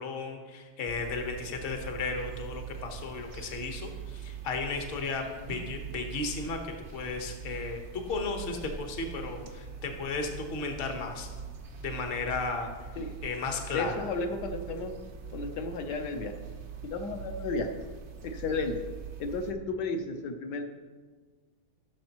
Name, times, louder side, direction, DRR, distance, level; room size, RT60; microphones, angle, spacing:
voice 1, 0.0-11.3 11.8-12.7 13.2-13.9, left 4 dB, 40° left, 3 dB, 0.8 m, -34 dB
sound 1, 0.9-19.5, right 7 dB, 75° right, 0.6 m, -43 dB
voice 2, 13.7-15.0 15.3-16.4 16.8-17.8 18.2-18.8 19.2-20.7, left 3 dB, 65° left, 6 dB, 1.2 m, -33 dB
15.5 x 6.5 x 2.9 m, 1.4 s
omnidirectional pair, 2.4 m